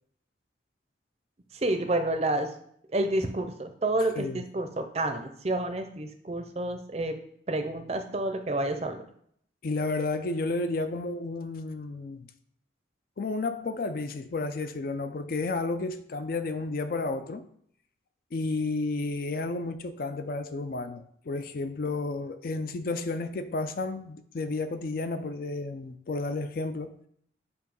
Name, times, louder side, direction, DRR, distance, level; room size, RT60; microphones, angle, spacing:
voice 1, 1.5-2.5 2.9-7.2 7.5-9.0, right 1 dB, 35° right, 0.5 m, -29 dB
voice 2, 9.6-12.3 13.2-17.4 18.3-26.9, left 3 dB, 50° left, 0.4 m, -32 dB
6.9 x 2.7 x 5.3 m
head